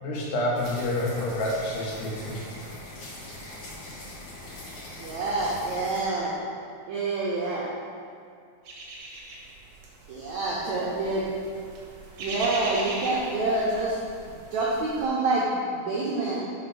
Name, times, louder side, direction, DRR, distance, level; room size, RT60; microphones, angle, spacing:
voice 1, 0.0-2.4, left 1 dB, 85° left, -3 dB, 3.2 m, -28 dB
sound 1, 0.5-6.0, left 1 dB, 55° left, 1.8 m, -42 dB
voice 2, 5.0-6.3 6.9-7.7 10.1-11.2 12.2-14.0 14.3-16.5, right 2 dB, 90° right, -6 dB, 1.6 m, -27 dB
sound 2, 8.7-15.1, right 2 dB, 70° right, 1.6 m, -39 dB
5.6 x 5.0 x 5.5 m, 2.3 s
omnidirectional pair, 4.5 m